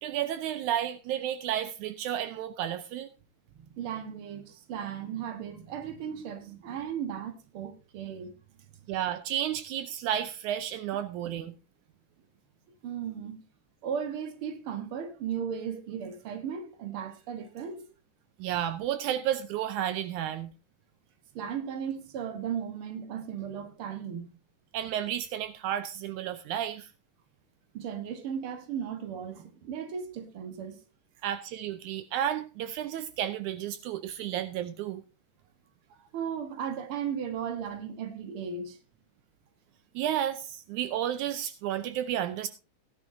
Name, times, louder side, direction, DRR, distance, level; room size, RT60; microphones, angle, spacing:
voice 1, 0.0-3.1 8.9-11.5 18.4-20.5 24.7-26.9 31.2-35.0 40.0-42.5, right 11 dB, 80° right, 2.1 m, -32 dB
voice 2, 3.5-8.4 12.8-13.4 13.8-17.9 21.3-24.3 27.7-30.8 36.1-38.8, right 8 dB, 50° right, 2.0 m, -36 dB
16.5 x 11.0 x 2.7 m
omnidirectional pair, 3.5 m